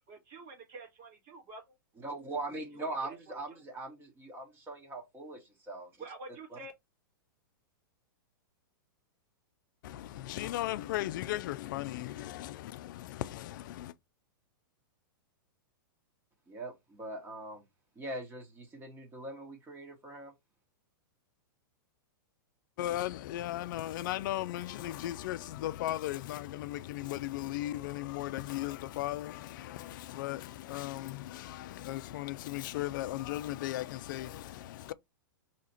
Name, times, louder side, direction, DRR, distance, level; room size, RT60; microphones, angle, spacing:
voice 1, 0.1-1.6 3.0-3.3 6.0-6.7, right 3 dB, 45° right, 1.4 m, -47 dB
voice 2, 2.0-5.9 6.5-6.6 16.5-17.6 18.0-20.3, right 2 dB, 20° right, 1.1 m, -41 dB
voice 3, 9.8-13.9 22.8-34.9, left 15 dB, 60° left, 0.4 m, -37 dB
2.8 x 2.4 x 4.3 m
hypercardioid pair, 125°, 12 cm